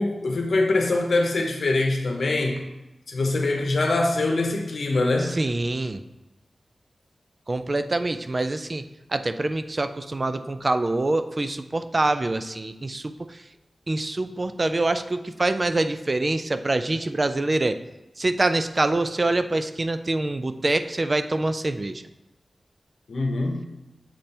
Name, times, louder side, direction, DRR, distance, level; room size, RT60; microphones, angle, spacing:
voice 1, 0.0-2.6 3.1-5.3 23.1-23.6, left 2 dB, 75° left, 2 dB, 0.8 m, -23 dB
voice 2, 5.2-6.0 7.5-8.8 9.1-13.4 13.9-17.8 18.2-22.0, right 2 dB, 35° right, 10 dB, 0.4 m, -25 dB
7.5 x 3.3 x 4.3 m, 0.97 s
wide cardioid pair, 80°, 0 cm